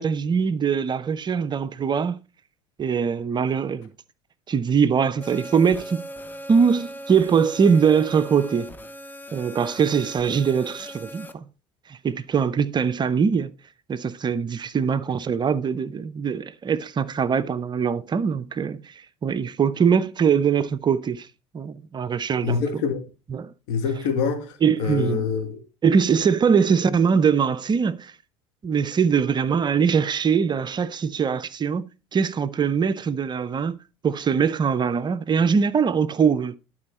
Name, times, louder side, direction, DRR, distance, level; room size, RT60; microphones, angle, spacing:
voice 1, 0.0-2.2 2.8-3.9 4.5-6.0 6.5-8.7 9.3-11.5 11.9-13.5 13.9-21.3 21.5-22.6 23.3-23.5 24.6-25.3 25.8-28.1 28.6-31.8 32.1-33.8 34.0-36.5, right 6 dB, 30° right, 0.6 m, -22 dB
sound 1, 5.2-11.3, equal, 10° left, 0.8 m, -39 dB
voice 2, 22.4-23.0 23.7-25.6, left 5 dB, 70° left, 1.9 m, -25 dB
11.5 x 4.4 x 4.2 m
hypercardioid pair, 70°, 15 cm